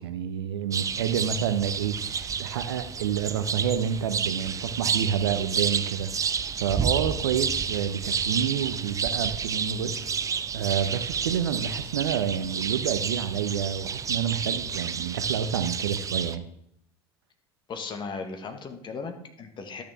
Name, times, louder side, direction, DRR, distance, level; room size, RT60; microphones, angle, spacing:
voice 1, 0.0-10.0 10.5-16.5, right 8 dB, 75° right, 11 dB, 0.8 m, -29 dB
sound 1, 0.7-16.4, right 6 dB, 25° right, 0.6 m, -30 dB
voice 2, 17.7-19.8, left 4 dB, 35° left, 6 dB, 1.6 m, -36 dB
12.5 x 6.7 x 3.5 m, 0.75 s
hypercardioid pair, 75°, 13 cm